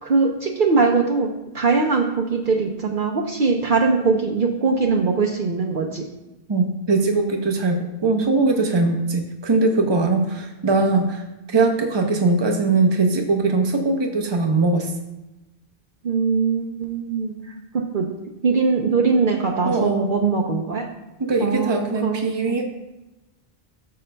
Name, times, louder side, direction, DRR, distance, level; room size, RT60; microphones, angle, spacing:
voice 1, 0.0-1.3 1.5-6.0 16.0-18.1 18.4-20.9 21.4-22.6, right 4 dB, 60° right, 1 dB, 0.8 m, -21 dB
voice 2, 6.5-14.9 19.6-20.1 21.2-22.6, right 3 dB, 30° right, 1 dB, 0.8 m, -21 dB
12.5 x 6.6 x 2.2 m, 1.0 s
omnidirectional pair, 1.1 m